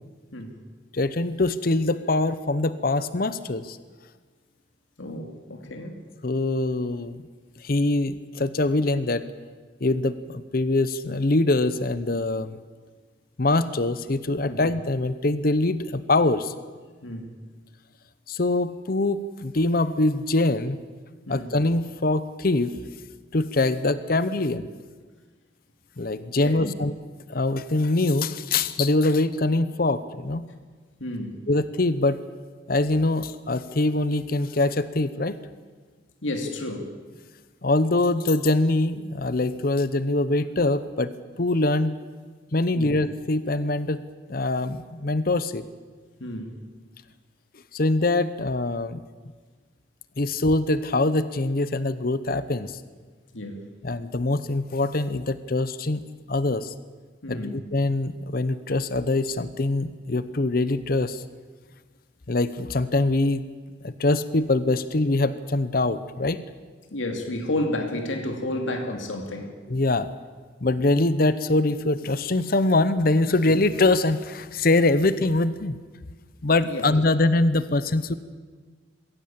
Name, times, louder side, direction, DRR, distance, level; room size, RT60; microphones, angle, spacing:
voice 1, 0.9-3.8 6.2-7.2 7.6-9.2 9.8-12.6 13.4-16.5 18.3-20.8 21.3-22.8 23.3-24.7 26.0-26.9 27.3-30.5 31.5-32.2 32.7-35.4 37.6-42.0 42.5-44.0 44.3-45.6 47.7-49.0 50.2-52.8 53.8-56.7 57.3-61.2 62.3-63.5 63.8-66.4 69.7-70.1 70.6-75.7 76.4-78.1, left 2 dB, 50° left, 14 dB, 0.8 m, -23 dB
voice 2, 5.0-6.0 14.5-14.6 17.0-17.3 21.3-21.5 26.4-26.7 31.0-31.4 36.2-36.9 42.7-42.9 46.2-46.6 53.3-53.7 57.2-57.6 66.9-69.5 76.7-76.8, left 1 dB, 85° left, 4 dB, 2.7 m, -31 dB
22.5 x 16.5 x 8.7 m, 1.5 s
head